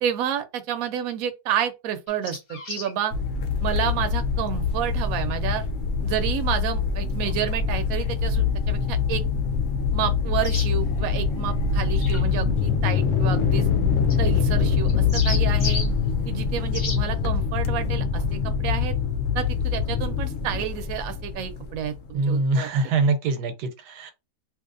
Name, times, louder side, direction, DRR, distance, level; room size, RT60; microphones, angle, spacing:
voice 1, 0.0-3.1 3.6-5.6 6.0-9.2 9.9-13.7 14.2-15.8 16.3-18.9 19.3-22.9, right 9 dB, 70° right, 0.9 m, -30 dB
sound 1, 2.1-2.9 6.1-6.2 10.4-10.7 12.0-12.2 14.1-14.2 14.9-15.9 16.7-17.0, left 3 dB, 40° left, 1.0 m, -32 dB
sound 2, 3.1-22.1, left 6 dB, 65° left, 0.8 m, -24 dB
voice 2, 22.1-24.1, right 3 dB, 85° right, 1.2 m, -24 dB
2.9 x 2.7 x 2.5 m
omnidirectional pair, 1.8 m